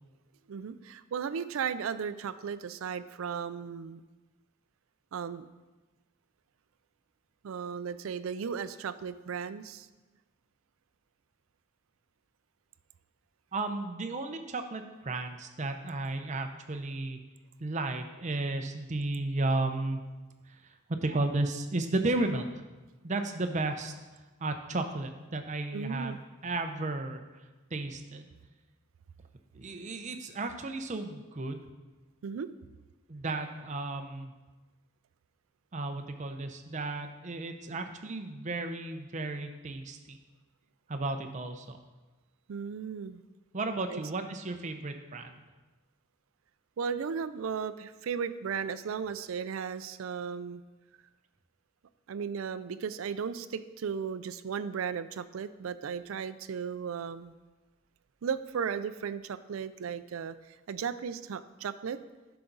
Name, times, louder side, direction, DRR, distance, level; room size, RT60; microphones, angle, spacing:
voice 1, 0.5-4.0 5.1-5.5 7.4-9.9 25.7-26.2 32.2-32.5 42.5-43.2 43.9-44.0 46.8-50.6 52.1-57.4 58.2-62.0, right 6 dB, 90° right, 13 dB, 0.4 m, -35 dB
voice 2, 13.5-17.2 17.6-20.0 20.5-20.6 20.9-22.6 23.0-23.9 24.4-27.2 27.7-28.3 29.5-31.7 33.1-34.3 35.7-40.2 40.9-41.8 43.5-45.4, right 2 dB, 35° right, 6 dB, 0.6 m, -33 dB
10.0 x 5.8 x 3.9 m, 1.2 s
head